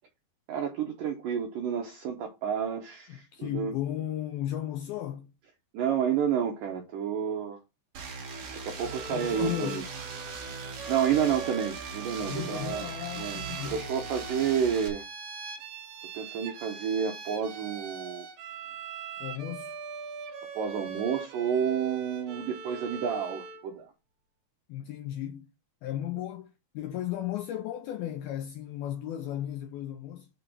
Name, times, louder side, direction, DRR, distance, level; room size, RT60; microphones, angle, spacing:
voice 1, 0.5-3.7 5.7-7.6 8.6-9.8 10.9-12.9 13.2-15.0 16.1-18.3 20.5-23.9, right 8 dB, 85° right, 1.8 m, -30 dB
voice 2, 3.1-5.3 9.1-9.9 12.3-13.8 19.2-19.7 24.7-25.5 25.8-30.3, left 12 dB, 85° left, 2.2 m, -35 dB
sound 1, 7.9-14.9, right 4 dB, 50° right, 2.1 m, -40 dB
Bowed string instrument, 8.8-23.7, right 6 dB, 70° right, 2.7 m, -41 dB
6.7 x 4.0 x 6.0 m
omnidirectional pair, 5.1 m